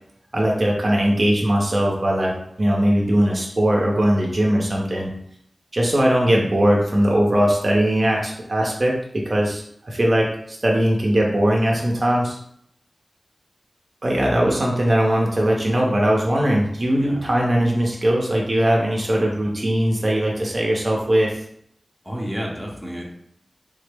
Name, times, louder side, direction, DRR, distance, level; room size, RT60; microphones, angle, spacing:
voice 1, 0.3-5.1 5.7-9.0 9.2-12.4 14.0-21.3, right 1 dB, 45° right, -2 dB, 0.6 m, -20 dB
voice 2, 17.0-17.3 22.0-23.1, equal, 5° left, -2 dB, 0.7 m, -30 dB
3.6 x 2.0 x 3.3 m, 0.70 s
wide cardioid pair, 80°, 0 cm